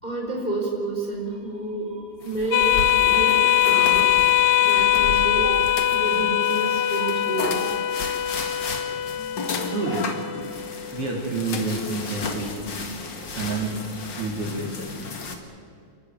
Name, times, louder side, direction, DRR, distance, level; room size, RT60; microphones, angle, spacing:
voice 1, 0.0-7.6, right 2 dB, 10° left, -1 dB, 3.7 m, -30 dB
sound 1, 2.2-3.8 4.5-4.6 4.8-4.9 5.7-6.7 7.3-8.3 8.5-8.6 9.4-10.3 10.6-10.7 11.4-12.0 14.0-14.1, left 7 dB, 60° left, 2.6 m, -41 dB
sound 2, 2.2-15.4, left 3 dB, 40° left, 2.1 m, -34 dB
sound 3, 2.5-11.5, left 11 dB, 80° left, 1.6 m, -22 dB
voice 2, 6.4-7.5 9.7-10.1 10.9-12.9 13.4-13.7 14.2-15.4, right 3 dB, 45° right, -1 dB, 3.7 m, -30 dB
29.0 x 13.5 x 9.6 m, 2.2 s
omnidirectional pair, 3.9 m